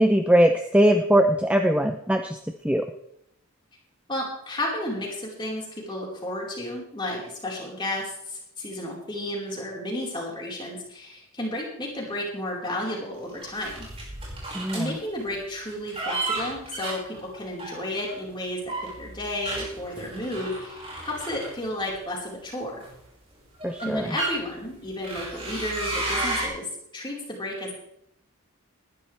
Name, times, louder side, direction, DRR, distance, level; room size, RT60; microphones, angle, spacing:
voice 1, 0.0-2.4 2.6-2.8 14.5-14.8 23.6-24.1, equal, 5° right, 6 dB, 0.6 m, -20 dB
voice 2, 4.1-13.9 14.7-22.8 23.8-26.7 26.9-27.7, left 1 dB, 20° left, -3 dB, 4.5 m, -32 dB
sound 1, 13.4-14.9 15.7-18.1 18.6-22.0 22.8-23.0 23.6-24.3 25.0-26.5, right 2 dB, 25° right, 5.5 m, -33 dB
19.5 x 12.0 x 3.4 m, 0.75 s
head